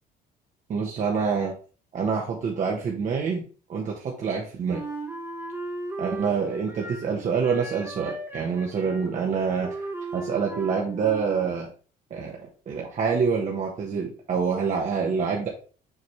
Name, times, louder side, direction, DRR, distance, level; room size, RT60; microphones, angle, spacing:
voice 1, 0.7-1.5 1.9-3.4 3.7-4.8 6.0-11.7 12.1-12.4 12.7-15.5, right 5 dB, 45° right, -1 dB, 1.2 m, -26 dB
Wind instrument woodwind instrument, 4.7-7.1 7.4-11.5, right 2 dB, 15° right, 1.1 m, -37 dB
7.3 x 4.1 x 3.2 m, 0.38 s
cardioid pair, 110°, 17 cm